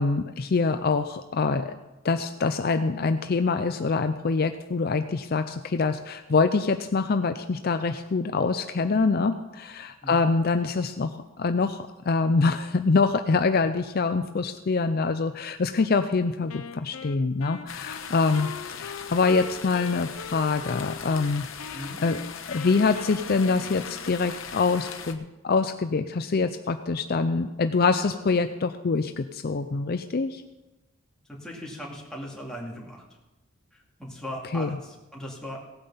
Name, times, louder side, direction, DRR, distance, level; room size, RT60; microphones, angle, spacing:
voice 1, 0.0-1.7 2.0-11.1 11.4-22.2 22.5-30.4 34.5-34.7, left 4 dB, 45° left, 8 dB, 0.5 m, -25 dB
Wind instrument woodwind instrument, 16.5-21.3 21.6-24.2, left 5 dB, 85° left, 0.7 m, -41 dB
sound 1, 17.7-25.1, left 7 dB, 65° left, 1.1 m, -40 dB
voice 2, 31.3-33.0 33.7-35.6, equal, 5° left, -3 dB, 2.5 m, -38 dB
17.0 x 8.9 x 5.6 m, 1.0 s
head